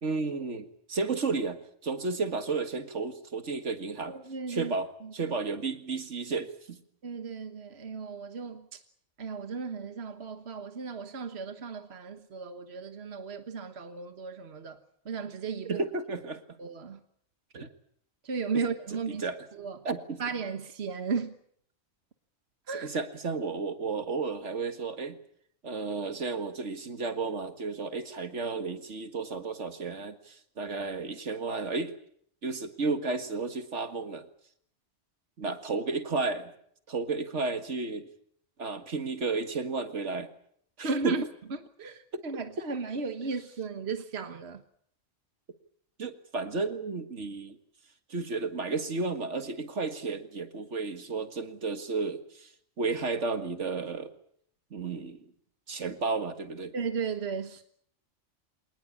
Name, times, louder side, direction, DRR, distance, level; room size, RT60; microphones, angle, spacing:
voice 1, 0.0-4.2 4.5-6.8 15.7-16.4 17.5-17.7 18.5-18.7 19.1-19.4 19.8-20.2 22.7-25.2 25.6-31.9 32.4-34.3 35.4-36.5 36.9-38.1 38.6-40.3 40.8-41.2 42.1-42.2 46.0-47.6 48.1-52.5 52.8-54.1 54.7-55.3 55.7-56.7, right 4 dB, 75° right, 2.1 m, -32 dB
voice 2, 4.1-4.7 5.0-5.1 7.0-8.8 9.2-14.8 15.0-15.8 16.6-17.0 18.2-19.2 19.5-19.9 20.2-21.3 22.7-22.9 35.4-35.5 40.8-41.2 41.5-44.6 56.7-57.6, right 5 dB, 60° right, 1.6 m, -35 dB
26.0 x 19.5 x 8.6 m
omnidirectional pair, 1.2 m